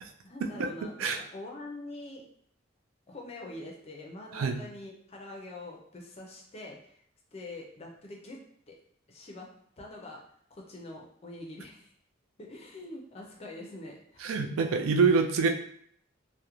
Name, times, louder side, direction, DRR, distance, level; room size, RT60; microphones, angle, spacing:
voice 1, 0.2-2.2 3.1-7.0 7.3-8.4 8.7-8.8 9.1-9.5 9.8-10.2 10.5-11.9 12.4-14.3, left 2 dB, 30° left, 0 dB, 0.4 m, -44 dB
voice 2, 14.2-15.5, right 5 dB, 90° right, 5 dB, 0.3 m, -25 dB
2.4 x 2.1 x 2.9 m, 0.63 s
head